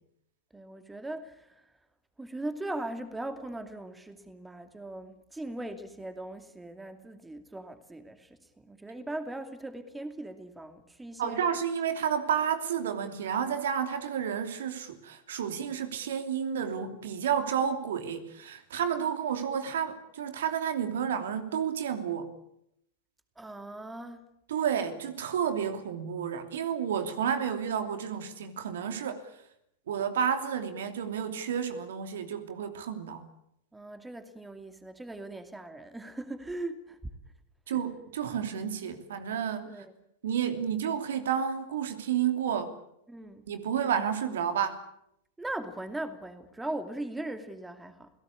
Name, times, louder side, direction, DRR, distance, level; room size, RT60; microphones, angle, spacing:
voice 1, 0.5-1.7 2.2-11.4 23.4-24.3 33.7-37.0 37.7-37.8 39.7-39.9 43.1-43.5 45.4-48.1, right 1 dB, 10° right, 9 dB, 2.6 m, -39 dB
voice 2, 11.2-22.3 24.5-29.2 29.9-33.2 37.7-39.8 40.2-42.7 43.5-44.8, right 8 dB, 70° right, 8 dB, 2.9 m, -31 dB
28.5 x 17.5 x 8.6 m, 0.78 s
hypercardioid pair, 100°, 0 cm